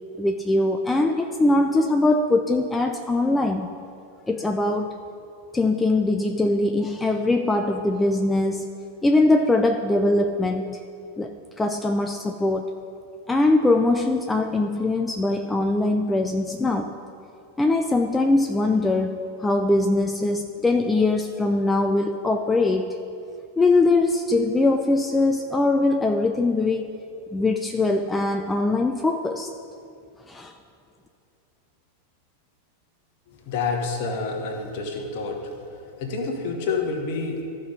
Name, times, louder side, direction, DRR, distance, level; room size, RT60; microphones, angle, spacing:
voice 1, 0.2-3.7 4.3-5.0 5.5-8.7 9.0-10.8 11.2-12.7 13.3-16.9 17.6-23.0 23.6-26.9 27.3-29.5 30.3-30.5, left 2 dB, 10° left, 5 dB, 0.4 m, -22 dB
voice 2, 33.3-37.4, left 4 dB, 45° left, 2 dB, 1.3 m, -29 dB
14.5 x 5.4 x 3.8 m, 2.6 s
figure-of-eight pair, 90°, 0 cm